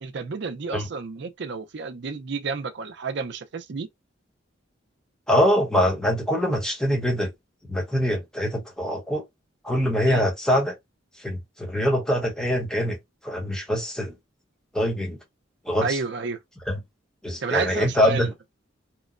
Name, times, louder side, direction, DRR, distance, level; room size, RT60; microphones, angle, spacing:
voice 1, 0.0-3.9 10.1-10.3 15.8-16.4 17.4-18.3, right 4 dB, 60° right, 0.5 m, -31 dB
voice 2, 5.3-7.3 7.7-9.2 9.6-10.8 11.2-13.0 13.2-14.1 14.7-15.2 15.6-16.0 16.7-16.8 17.2-18.3, equal, 5° left, 0.9 m, -23 dB
3.0 x 2.1 x 2.4 m
head